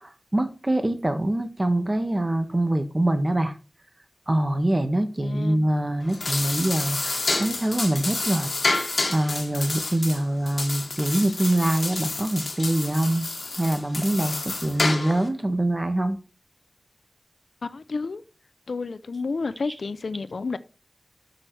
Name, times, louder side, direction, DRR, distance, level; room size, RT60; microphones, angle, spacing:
voice 1, 0.0-3.5 4.3-8.5 8.7-13.3 13.6-16.2, right 1 dB, 30° right, 1.6 m, -24 dB
voice 2, 5.2-5.6 17.6-18.2 18.7-20.6, left 4 dB, 80° left, 0.6 m, -30 dB
sound 1, 6.0-15.3, left 2 dB, 60° left, 2.1 m, -29 dB
12.5 x 6.0 x 3.3 m
wide cardioid pair, 50°, 0 cm